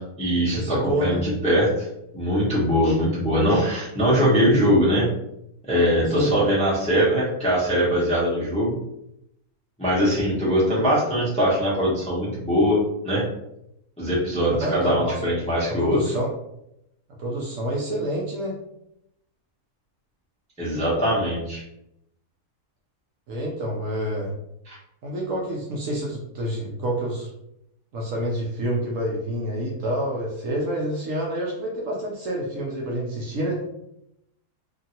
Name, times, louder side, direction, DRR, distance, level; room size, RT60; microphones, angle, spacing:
voice 1, 0.0-1.9 2.1-5.1 5.6-8.7 9.8-13.2 14.0-16.0 20.6-21.6 24.7-24.8, equal, 10° left, -6 dB, 0.4 m, -21 dB
voice 2, 0.5-1.2 6.1-6.3 14.5-15.2 15.7-16.3 17.2-18.6 23.3-24.3 25.0-27.3 27.9-33.6, right 1 dB, 65° right, -2 dB, 0.9 m, -28 dB
2.8 x 2.5 x 2.7 m, 0.80 s
omnidirectional pair, 1.7 m